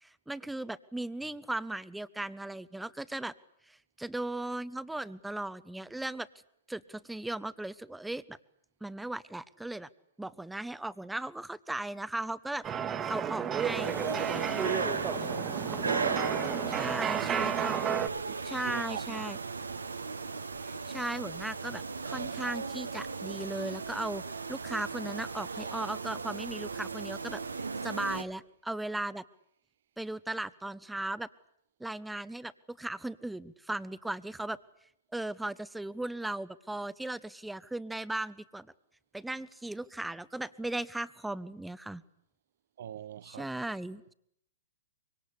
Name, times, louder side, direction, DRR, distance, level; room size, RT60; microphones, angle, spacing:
voice 1, 0.0-3.3 3.7-6.3 6.7-8.4 8.8-9.9 10.2-12.6 13.1-14.3 16.8-17.8 18.4-19.4 20.6-24.2 24.5-27.4 27.8-29.2 30.0-31.3 31.8-34.6 35.1-38.7 39.1-42.0 43.2-44.1, right 2 dB, 5° right, 1.1 m, -37 dB
sound 1, 12.6-18.1, right 8 dB, 20° right, 1.7 m, -32 dB
sound 2, 13.5-28.2, right 4 dB, 80° right, 1.7 m, -36 dB
voice 2, 15.2-16.1 17.2-17.8 18.3-18.4 18.6-19.2 42.8-43.5, right 9 dB, 60° right, 1.0 m, -43 dB
25.5 x 24.5 x 8.5 m
figure-of-eight pair, 110°, 0 cm